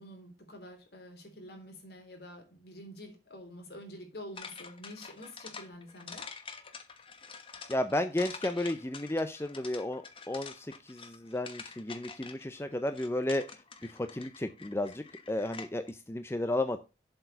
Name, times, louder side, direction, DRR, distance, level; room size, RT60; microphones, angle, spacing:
voice 1, 0.0-6.3, left 1 dB, 60° left, 3.4 m, -47 dB
sound 1, 4.4-15.9, left 5 dB, 30° left, 1.1 m, -47 dB
voice 2, 7.7-16.8, left 1 dB, 15° left, 0.6 m, -33 dB
7.5 x 4.7 x 6.6 m
head